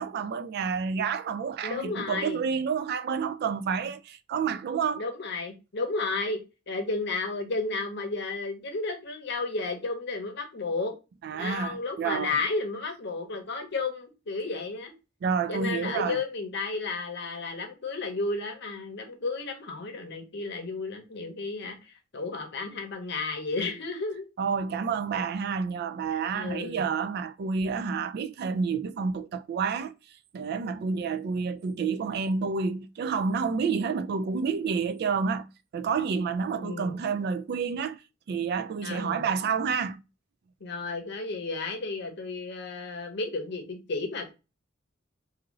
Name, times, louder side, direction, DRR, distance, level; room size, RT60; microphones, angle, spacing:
voice 1, 0.0-5.0 11.2-12.4 15.2-16.2 24.4-29.9 30.3-35.5 35.7-38.0 38.3-40.0, right 5 dB, 55° right, 0.3 m, -29 dB
voice 2, 1.6-2.4 4.5-4.6 5.0-6.4 6.7-10.9 11.4-14.9 15.5-21.8 22.1-24.3 26.3-26.9 36.5-37.0 38.8-39.3 40.6-44.3, left 3 dB, 60° left, 0.7 m, -32 dB
2.7 x 2.6 x 2.9 m
head